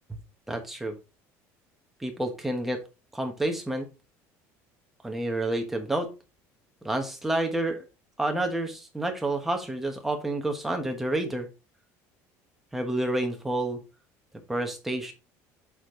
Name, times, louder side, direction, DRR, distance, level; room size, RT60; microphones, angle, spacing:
voice 1, 0.5-1.0 2.0-2.8 3.1-3.9 5.0-6.1 6.8-7.9 8.2-11.5 12.7-13.8 14.5-15.1, right 1 dB, 5° right, 3 dB, 1.3 m, -29 dB
8.3 x 5.1 x 3.8 m, 0.29 s
cardioid pair, 180°, 6 cm